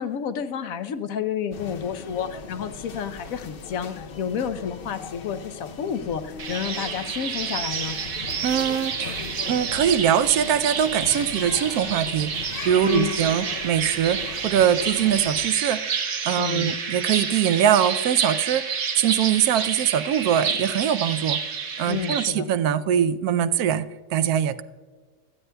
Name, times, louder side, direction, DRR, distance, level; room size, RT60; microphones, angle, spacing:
voice 1, 0.0-8.0 12.8-13.1 16.4-16.8 21.9-22.5, left 8 dB, 70° left, 10 dB, 1.1 m, -30 dB
sound 1, 1.5-15.5, left 5 dB, 55° left, 0.7 m, -39 dB
sound 2, 6.4-22.3, right 6 dB, 70° right, 1.4 m, -29 dB
voice 2, 8.4-15.8 16.2-21.4 21.8-23.8 24.1-24.6, right 9 dB, 85° right, 13 dB, 1.1 m, -22 dB
26.0 x 9.5 x 2.2 m, 1.5 s
omnidirectional pair, 1.5 m